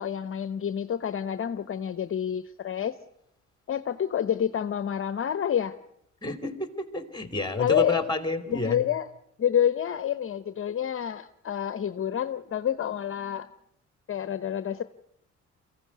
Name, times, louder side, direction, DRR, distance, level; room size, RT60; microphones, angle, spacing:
voice 1, 0.0-3.0 3.7-5.8 7.6-8.1 8.5-9.1 9.4-13.5 14.1-14.8, left 9 dB, 45° left, 13 dB, 0.9 m, -28 dB
voice 2, 6.2-8.8, left 2 dB, 15° left, 11 dB, 3.1 m, -29 dB
23.5 x 15.5 x 9.5 m, 0.78 s
cardioid pair, 90°, 30 cm